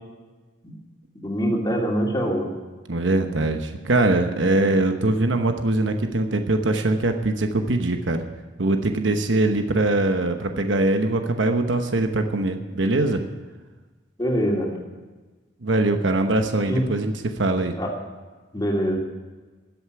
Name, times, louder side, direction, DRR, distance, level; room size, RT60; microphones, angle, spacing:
voice 1, 1.2-2.5 14.2-14.7 16.7-16.8 17.8-17.9 18.5-19.0, equal, 20° left, -1 dB, 2.7 m, -23 dB
voice 2, 2.9-8.2 8.6-13.2 15.6-17.7, right 2 dB, 85° right, 6 dB, 1.0 m, -22 dB
13.5 x 8.2 x 9.6 m, 1.3 s
head